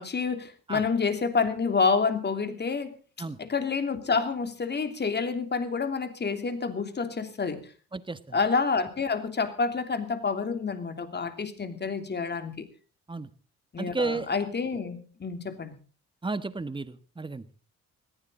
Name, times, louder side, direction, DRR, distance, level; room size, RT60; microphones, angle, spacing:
voice 1, 0.0-2.9 3.4-7.7 8.3-12.7 13.7-15.7, left 5 dB, 35° left, 9 dB, 2.9 m, -28 dB
voice 2, 7.9-8.4 13.1-13.3 13.8-14.3 16.2-17.4, right 3 dB, 15° right, 13 dB, 1.4 m, -32 dB
21.0 x 15.0 x 3.8 m, 0.37 s
cardioid pair, 90°, 30 cm